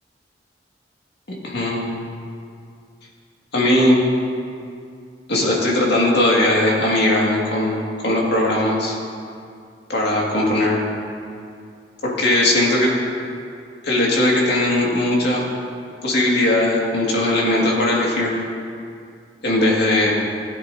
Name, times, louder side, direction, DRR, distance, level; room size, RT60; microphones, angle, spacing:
voice 1, 1.4-2.0 3.5-4.0 5.3-9.0 9.9-10.8 12.0-12.9 13.8-15.4 16.0-18.3 19.4-20.1, left 1 dB, 65° left, -3 dB, 2.2 m, -19 dB
16.0 x 9.6 x 2.8 m, 2.4 s
head